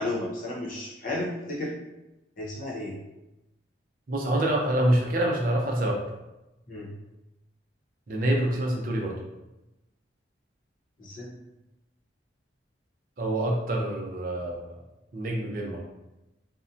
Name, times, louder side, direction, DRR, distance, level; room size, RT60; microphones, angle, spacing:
voice 1, 0.0-1.7 2.4-2.9 6.7-6.9 11.0-11.3, left 2 dB, 45° left, -6 dB, 0.8 m, -33 dB
voice 2, 4.1-6.0 8.1-9.2 13.2-14.8 15.1-15.8, right 1 dB, 45° right, 0 dB, 0.5 m, -26 dB
2.6 x 2.1 x 2.5 m, 0.96 s
head